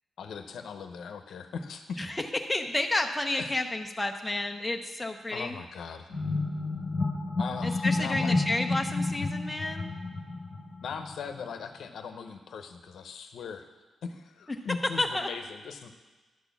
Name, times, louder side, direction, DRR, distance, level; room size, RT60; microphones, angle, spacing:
voice 1, 0.2-2.1 3.4-3.5 5.3-6.1 7.4-8.4 10.8-13.7 14.0-15.9, left 6 dB, 75° left, 6 dB, 0.7 m, -39 dB
voice 2, 2.0-5.6 7.6-9.9 15.0-15.3, left 2 dB, 10° left, 3 dB, 0.5 m, -31 dB
sound 1, 6.1-11.4, left 3 dB, 45° left, 1.0 m, -30 dB
11.0 x 4.2 x 7.0 m, 1.3 s
wide cardioid pair, 160°, 0 cm